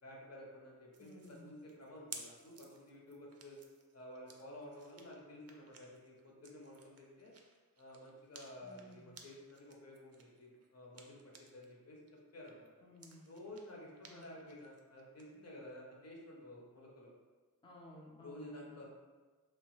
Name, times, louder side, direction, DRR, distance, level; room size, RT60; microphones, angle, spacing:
voice 1, 0.0-3.6 3.9-7.4 7.8-12.0 12.3-12.7 13.3-17.1 18.2-18.9, left 1 dB, 45° left, -3 dB, 0.7 m, -52 dB
sound 1, 0.9-11.7 12.1-15.3, right 4 dB, 45° right, 0.4 m, -57 dB
voice 2, 1.0-1.5 8.6-9.0 12.8-13.3 14.0-14.2 17.6-18.8, left 1 dB, 15° left, -4 dB, 0.5 m, -56 dB
3.0 x 2.1 x 3.1 m, 1.3 s
wide cardioid pair, 80°, 36 cm